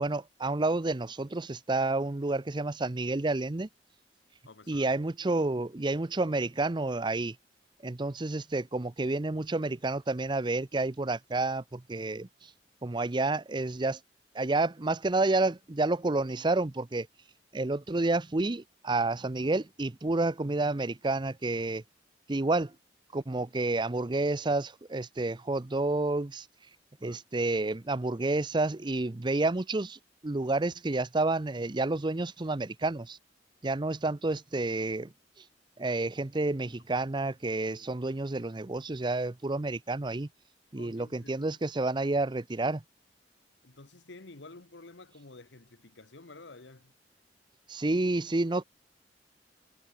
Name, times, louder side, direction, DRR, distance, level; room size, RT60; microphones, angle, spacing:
voice 1, 0.0-3.7 4.7-7.4 7.8-12.5 12.8-14.0 14.3-17.1 17.5-21.8 22.3-22.7 23.1-26.5 27.0-33.2 33.6-35.1 35.4-35.5 35.8-40.3 40.7-42.8 47.7-48.6, right 2 dB, 25° right, 0.6 m, -30 dB
voice 2, 4.4-4.9 27.0-27.2 36.9-37.1 40.7-41.5 43.6-46.9, left 3 dB, 80° left, 1.4 m, -51 dB
head